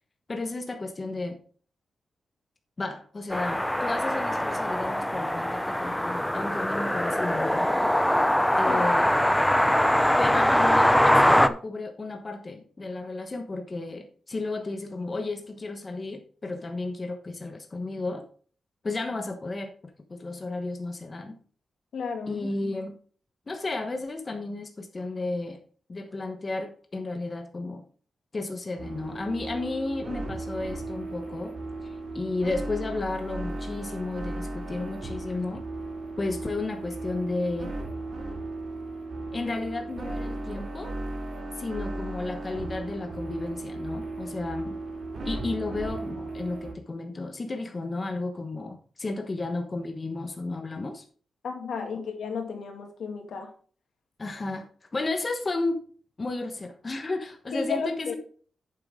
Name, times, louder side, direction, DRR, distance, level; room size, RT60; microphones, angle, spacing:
voice 1, 0.3-1.4 2.8-7.9 8.6-9.1 10.2-18.2 18.8-19.7 20.1-21.4 22.3-23.0 23.5-25.6 25.9-27.8 28.3-31.5 31.8-35.6 36.2-37.7 39.3-41.0 41.6-44.8 45.2-51.0 51.9-52.0 54.2-55.8 56.2-58.1, left 2 dB, 30° left, 5 dB, 1.1 m, -33 dB
sound 1, 3.3-11.5, left 1 dB, 5° left, 0.5 m, -22 dB
voice 2, 21.9-22.4 51.4-53.5 57.5-58.2, left 5 dB, 80° left, 4 dB, 2.3 m, -33 dB
sound 2, 28.8-46.7, right 2 dB, 55° right, 4.1 m, -36 dB
8.9 x 7.6 x 3.7 m, 0.43 s
wide cardioid pair, 125°, 0 cm